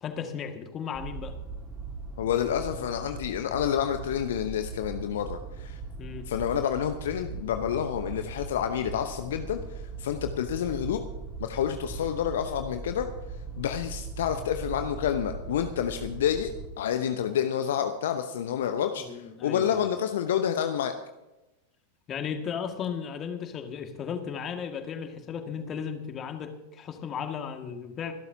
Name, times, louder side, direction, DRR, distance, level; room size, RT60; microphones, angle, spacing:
voice 1, 0.0-1.3 6.0-6.3 19.0-19.8 22.1-28.1, left 7 dB, 30° left, 6 dB, 1.9 m, -35 dB
sound 1, 0.9-16.7, right 4 dB, 5° right, 3.8 m, -39 dB
voice 2, 2.2-5.8 6.3-11.0 11.4-13.1 13.5-16.5 16.8-20.9, left 9 dB, 60° left, 7 dB, 0.9 m, -29 dB
26.0 x 12.5 x 2.8 m, 0.99 s
figure-of-eight pair, 90°, 0 cm